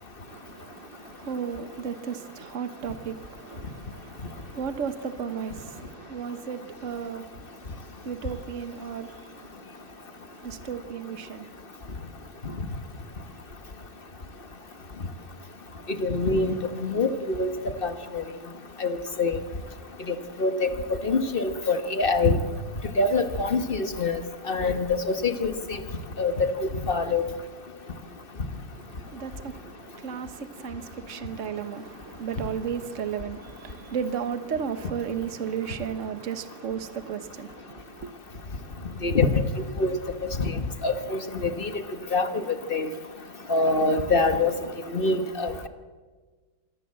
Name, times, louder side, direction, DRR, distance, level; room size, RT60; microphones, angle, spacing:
voice 1, 0.2-12.1 12.4-12.6 28.7-38.1, right 7 dB, 45° right, 1.4 m, -35 dB
voice 2, 16.0-17.5 17.8-18.2 18.8-19.4 20.1-20.7 21.0-22.4 23.0-24.2 24.5-25.5 26.2-27.3 39.0-39.4 39.8-39.9 40.2-40.5 40.8-41.8 42.1-42.4 42.7-42.9 43.5-44.5 44.9-45.7, left 3 dB, 30° left, 1.2 m, -25 dB
26.5 x 18.5 x 7.6 m
omnidirectional pair, 2.2 m